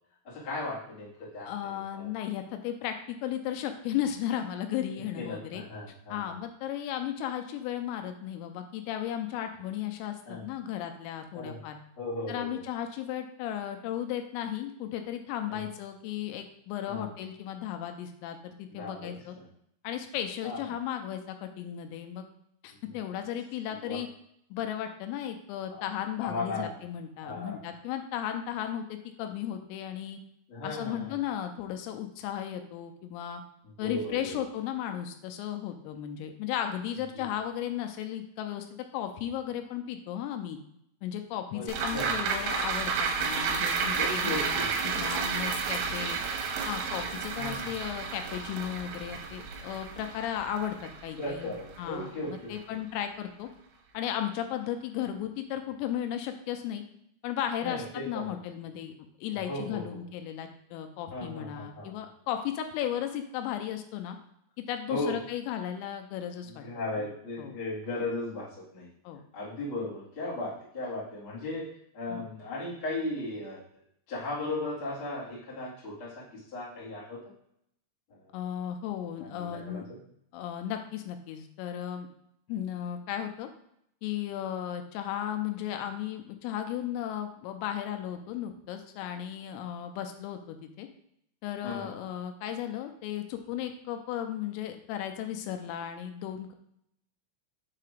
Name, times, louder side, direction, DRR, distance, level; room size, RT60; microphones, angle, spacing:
voice 1, 0.2-1.1 1.3-2.1 5.2-6.3 10.2-10.4 11.3-11.6 12.0-12.5 15.5-15.6 16.9-17.1 18.7-19.4 20.4-20.6 23.0-23.1 23.8-24.0 25.7-25.8 26.2-26.7 27.2-27.5 30.5-31.1 33.8-34.3 37.2-37.3 41.5-42.1 43.9-44.7 47.3-47.7 51.2-52.8 57.6-58.4 59.5-60.0 61.1-61.9 64.9-65.2 66.5-68.9 69.3-71.7 71.9-73.6 74.1-77.2 78.2-78.3 79.2-80.0 91.6-91.9, left 2 dB, 45° left, -9 dB, 1.7 m, -36 dB
voice 2, 1.5-5.6 6.1-11.8 12.3-19.4 19.8-22.3 22.6-24.1 24.5-30.2 30.6-33.4 33.8-38.7 38.9-40.6 41.0-46.2 46.7-53.5 53.9-56.8 57.2-58.9 59.2-64.2 64.6-66.7 67.0-67.1 67.4-67.6 69.0-69.2 72.1-72.3 78.3-79.8 80.3-82.1 82.5-83.5 84.0-90.9 91.4-96.5, left 10 dB, 85° left, 6 dB, 3.2 m, -35 dB
sound 1, 41.7-52.2 52.6-52.7, right 5 dB, 85° right, 3.3 m, -31 dB
7.4 x 2.9 x 4.9 m, 0.73 s
omnidirectional pair, 5.8 m